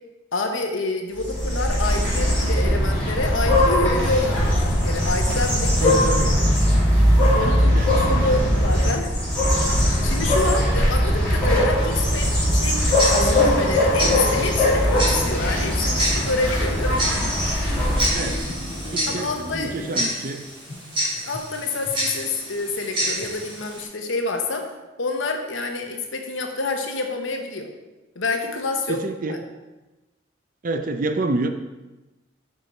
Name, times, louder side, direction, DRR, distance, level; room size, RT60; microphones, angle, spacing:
voice 1, 0.3-6.1 7.3-9.1 10.0-17.0 19.1-19.7 21.2-24.7 25.0-27.7 28.1-29.0 29.2-29.4, left 3 dB, 75° left, 3 dB, 1.0 m, -27 dB
sound 1, 1.2-18.5, equal, 5° left, 2.7 m, -20 dB
voice 2, 5.8-6.3 7.4-8.4 18.1-18.4 18.9-20.4 28.9-29.4 30.6-31.5, right 2 dB, 40° right, 7 dB, 0.5 m, -28 dB
Tick-tock, 12.2-23.8, equal, 25° right, 2.7 m, -29 dB
sound 2, 13.8-20.3, left 1 dB, 35° left, 1.3 m, -36 dB
6.9 x 5.4 x 4.3 m, 1.1 s
head